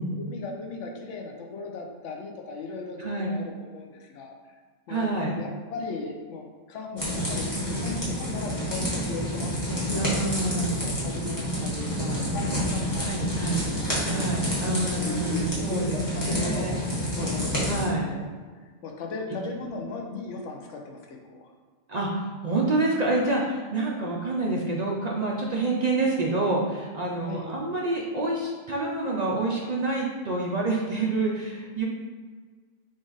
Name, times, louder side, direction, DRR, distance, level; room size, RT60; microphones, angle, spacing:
voice 1, 0.1-4.4 4.9-5.1 5.4-9.5 9.8-10.3 10.7-14.5 15.0-16.8 17.1-18.2 18.5-21.5 27.2-27.5, left 4 dB, 70° left, 2 dB, 1.0 m, -37 dB
voice 2, 3.0-3.3 4.9-5.4 9.9-10.7 13.0-13.6 14.1-16.7 17.7-18.1 21.9-31.8, right 2 dB, 55° right, -3 dB, 0.4 m, -27 dB
sound 1, 7.0-17.8, equal, 15° left, 1.3 m, -29 dB
5.1 x 2.5 x 3.9 m, 1.5 s
omnidirectional pair, 1.3 m